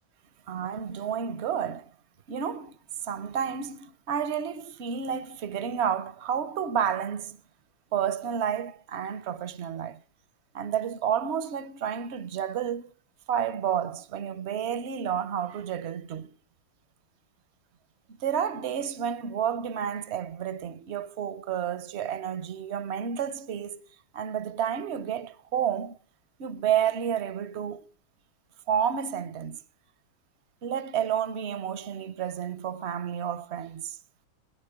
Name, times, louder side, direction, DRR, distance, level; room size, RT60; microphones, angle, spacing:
voice 1, 0.5-1.9 2.3-2.8 3.0-7.4 7.9-10.0 10.5-12.9 13.3-16.3 18.2-23.8 24.1-26.0 26.4-27.8 28.7-29.6 30.6-34.0, right 8 dB, 60° right, 0.7 m, -30 dB
18.5 x 10.5 x 5.1 m
omnidirectional pair, 2.2 m